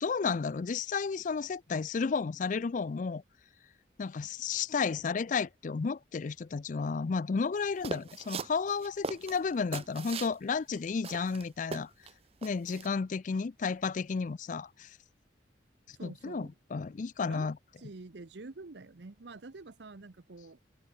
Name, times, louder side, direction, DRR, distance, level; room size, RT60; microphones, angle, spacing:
voice 1, 0.0-3.2 4.0-11.9 12.4-15.0 15.9-17.6, left 5 dB, 45° left, 0.4 m, -32 dB
sound 1, 7.8-10.3 10.7-10.8 11.0-12.1 12.4-12.9, right 4 dB, 35° right, 0.5 m, -39 dB
voice 2, 15.9-16.5 17.3-17.5 17.8-20.6, right 3 dB, 70° right, 0.9 m, -47 dB
head